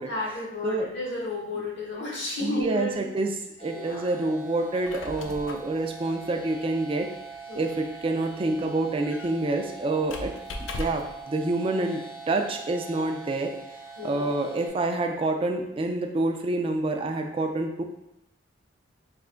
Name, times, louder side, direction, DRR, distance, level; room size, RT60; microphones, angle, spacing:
voice 1, 0.1-3.1 3.7-4.0 7.5-7.7 14.0-14.3, left 2 dB, 65° left, -4 dB, 1.1 m, -32 dB
voice 2, 2.4-3.3 3.6-7.1 7.5-10.3 10.8-12.0 12.3-13.5 14.0-17.8, right 2 dB, 30° right, 4 dB, 0.3 m, -27 dB
sound 1, 3.6-14.7, right 4 dB, 25° left, 0.6 m, -43 dB
Squeak, 4.6-11.2, left 2 dB, 90° left, 0.4 m, -41 dB
3.3 x 2.6 x 3.7 m, 0.85 s
head